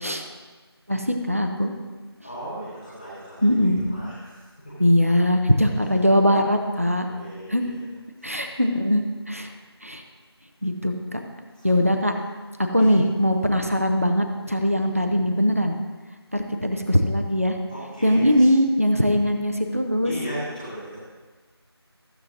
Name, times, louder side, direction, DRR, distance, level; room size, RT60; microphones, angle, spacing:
voice 1, 0.9-1.7 3.4-3.8 4.8-7.1 7.5-7.6 8.2-9.5 9.8-10.0 10.6-11.2 11.6-12.1 12.7-15.8 16.3-17.6 18.0-20.1, equal, 30° right, 4 dB, 0.6 m, -21 dB
voice 2, 2.2-4.4 7.0-7.8 8.2-8.4 11.5-11.7 12.8-12.9 17.7-18.5 20.0-21.0, right 1 dB, 20° left, -12 dB, 2.2 m, -37 dB
15.0 x 7.4 x 2.6 m, 1.3 s
figure-of-eight pair, 175°, 14 cm